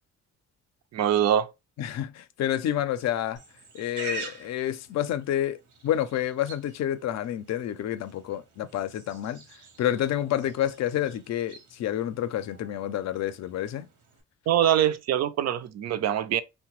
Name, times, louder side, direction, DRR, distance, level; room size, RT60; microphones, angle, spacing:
voice 1, 0.9-1.5 14.5-16.4, right 10 dB, 60° right, 0.5 m, -23 dB
voice 2, 1.8-3.4 3.7-9.4 9.8-13.9, left 11 dB, 60° left, 0.5 m, -29 dB
Livestock farm animals working animals, 3.4-14.2, right 3 dB, 75° right, 0.9 m, -45 dB
2.8 x 2.2 x 3.0 m
cardioid pair, 90°, 30 cm